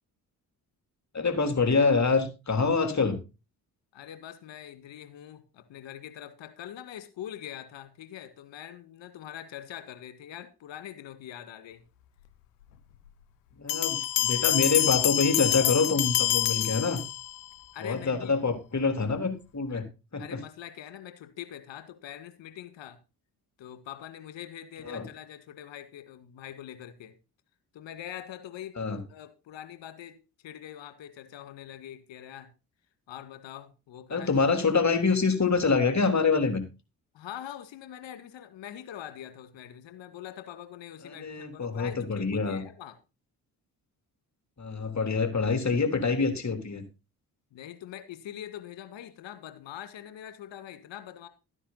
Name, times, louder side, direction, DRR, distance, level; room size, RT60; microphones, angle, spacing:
voice 1, 1.1-3.2 13.6-17.0 17.8-19.9 20.1-20.4 24.8-25.1 28.8-29.0 34.1-36.6 41.0-42.6 44.6-46.8, left 4 dB, 35° left, 7 dB, 3.6 m, -26 dB
voice 2, 3.9-11.8 17.7-18.3 19.7-19.9 20.2-23.0 23.6-27.1 27.7-28.8 29.1-30.2 30.4-32.5 33.1-34.3 37.1-43.0 47.5-51.3, left 11 dB, 65° left, 10 dB, 2.1 m, -43 dB
sound 1, 13.7-17.5, left 14 dB, 90° left, 0.8 m, -26 dB
13.0 x 9.9 x 4.1 m, 0.29 s
hypercardioid pair, 40°, 47 cm